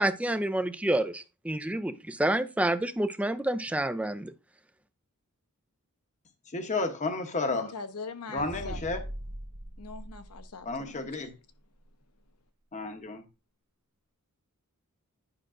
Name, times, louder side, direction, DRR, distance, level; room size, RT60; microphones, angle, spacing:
voice 1, 0.0-4.3, right 1 dB, 5° right, 0.4 m, -28 dB
voice 2, 6.5-7.7 8.3-9.0 10.6-11.3 12.7-13.2, left 3 dB, 30° left, 0.9 m, -32 dB
voice 3, 7.5-8.9 9.8-11.4, left 4 dB, 80° left, 0.9 m, -42 dB
sound 1, 8.4-11.1, right 1 dB, 75° right, 1.0 m, -41 dB
9.9 x 5.9 x 2.5 m
head